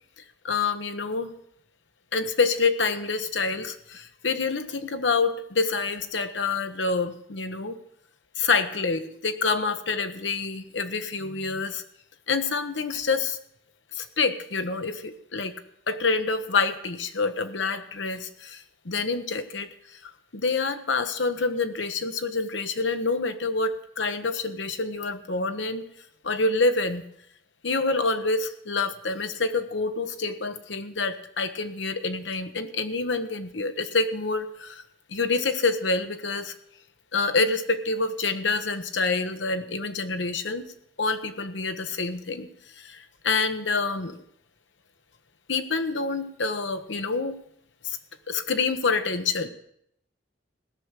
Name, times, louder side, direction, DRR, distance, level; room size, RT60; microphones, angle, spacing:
voice 1, 0.4-1.3 2.1-7.8 8.4-11.8 12.3-13.4 13.9-15.6 15.9-25.8 26.2-27.0 27.6-34.8 35.1-36.5 37.1-40.7 41.0-42.5 42.8-44.2 45.5-47.4 47.8-48.0 48.3-49.5, left 4 dB, 70° left, 9 dB, 1.1 m, -27 dB
17.0 x 6.3 x 8.2 m, 0.72 s
head